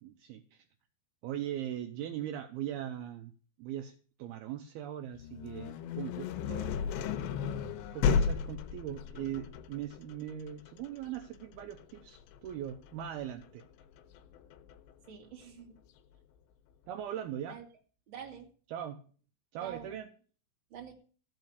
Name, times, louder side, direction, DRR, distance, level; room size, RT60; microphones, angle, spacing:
voice 1, 0.0-0.7 1.2-3.3 3.6-3.9 4.2-6.8 7.9-13.6 16.9-17.6 18.7-19.0 19.5-20.1, right 11 dB, 80° right, 6 dB, 2.3 m, -40 dB
sound 1, 5.1-14.9, left 6 dB, 80° left, 3.1 m, -34 dB
voice 2, 15.1-15.8 17.5-17.7 18.1-18.5 19.6-20.0 20.7-20.9, right 8 dB, 35° right, 1 dB, 2.4 m, -47 dB
15.5 x 5.6 x 8.1 m, 0.42 s
omnidirectional pair, 5.3 m